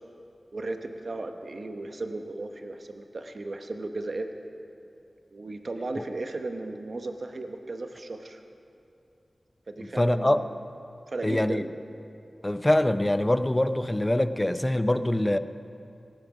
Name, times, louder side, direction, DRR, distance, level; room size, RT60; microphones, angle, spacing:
voice 1, 0.5-4.3 5.3-8.4 9.7-10.4 11.1-11.7, right 2 dB, 60° right, 6 dB, 1.0 m, -35 dB
voice 2, 9.8-10.4 11.2-11.6 12.4-15.4, left 1 dB, 20° left, 12 dB, 0.5 m, -24 dB
17.0 x 9.1 x 6.1 m, 2.7 s
wide cardioid pair, 55°, 0 cm